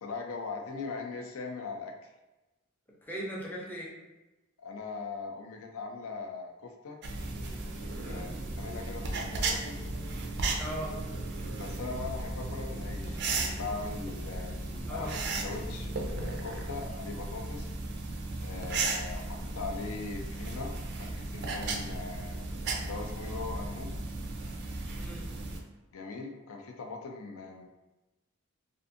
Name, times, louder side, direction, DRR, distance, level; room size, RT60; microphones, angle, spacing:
voice 1, 0.0-2.1 4.6-7.0 8.0-9.9 11.5-14.5 14.9-17.7 18.4-20.7 21.0-22.4 22.8-23.9 25.9-27.7, left 4 dB, 75° left, 3 dB, 0.4 m, -40 dB
voice 2, 3.0-3.9 8.0-8.3 10.6-11.0 14.9-15.2 25.0-25.3, equal, 10° left, -5 dB, 0.5 m, -39 dB
sound 1, 7.0-25.6, right 2 dB, 55° right, 0.4 m, -35 dB
sound 2, 7.1-16.8, equal, 50° left, 0.8 m, -49 dB
2.5 x 2.5 x 2.5 m, 1.1 s
head